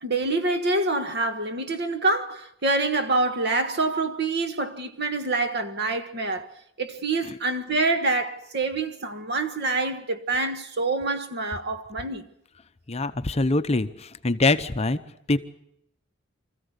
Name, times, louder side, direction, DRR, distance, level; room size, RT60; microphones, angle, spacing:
voice 1, 0.0-6.5 6.8-12.3, right 3 dB, 55° right, 1.5 m, -26 dB
voice 2, 12.9-15.0 15.3-15.4, left 2 dB, 30° left, 0.8 m, -24 dB
25.0 x 15.0 x 8.2 m
head